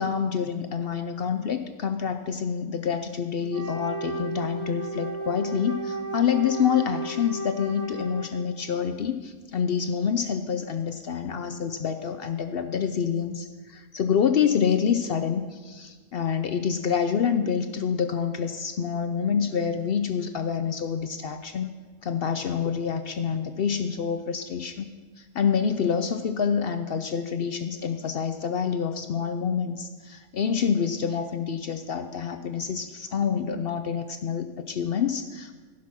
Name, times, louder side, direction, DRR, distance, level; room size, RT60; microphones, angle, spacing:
voice 1, 0.0-21.8 22.0-24.9 25.2-35.5, left 7 dB, 70° left, 9 dB, 0.5 m, -27 dB
Wind instrument woodwind instrument, 3.5-8.7, right 2 dB, 30° right, 1.2 m, -34 dB
15.5 x 5.9 x 6.0 m, 1.4 s
omnidirectional pair, 1.5 m